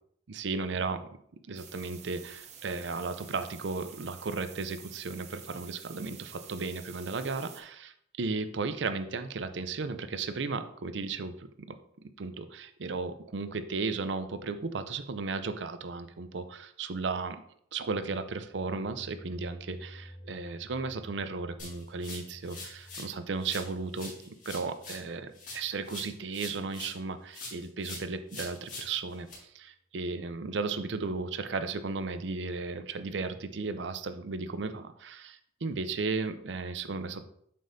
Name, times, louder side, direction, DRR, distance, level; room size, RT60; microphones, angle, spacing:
voice 1, 0.3-1.1 1.5-11.7 12.0-17.4 17.7-37.2, right 4 dB, 75° right, 10 dB, 0.5 m, -35 dB
sound 1, 1.6-7.6, right 7 dB, 40° right, 0.7 m, -50 dB
sound 2, 17.8-26.7, equal, 80° left, 1.9 m, -52 dB
sound 3, 21.6-23.1 23.4-27.0 27.3-29.3, left 2 dB, 45° left, 2.3 m, -44 dB
7.5 x 5.2 x 2.7 m, 0.69 s
head